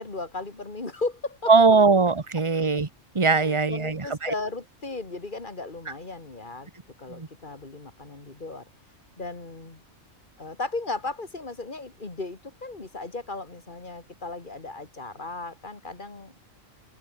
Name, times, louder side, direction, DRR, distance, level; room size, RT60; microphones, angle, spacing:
voice 1, 0.0-1.8 3.3-6.7 7.0-8.7 9.2-9.8 10.4-16.3, left 3 dB, 40° left, 2.7 m, -36 dB
voice 2, 1.5-2.9 3.1-4.3 7.1-7.3, right 4 dB, 25° right, 1.3 m, -20 dB
open air
omnidirectional pair, 1.3 m